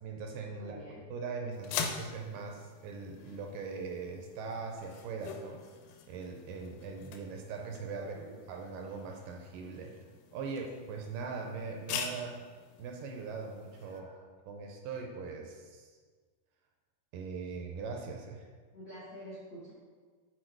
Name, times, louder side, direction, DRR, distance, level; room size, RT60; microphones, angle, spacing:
voice 1, 0.0-0.8 1.1-5.6 6.1-8.2 8.5-10.0 10.3-12.4 12.8-14.1 14.5-15.9 17.1-18.5, right 4 dB, 80° right, 2 dB, 2.2 m, -40 dB
voice 2, 0.5-1.0 7.9-8.4 13.8-14.2 18.7-19.7, equal, 65° left, -9 dB, 1.2 m, -48 dB
sound 1, 1.5-14.0, left 7 dB, 85° left, 2.4 m, -44 dB
6.4 x 4.6 x 4.6 m, 1.5 s
omnidirectional pair, 4.1 m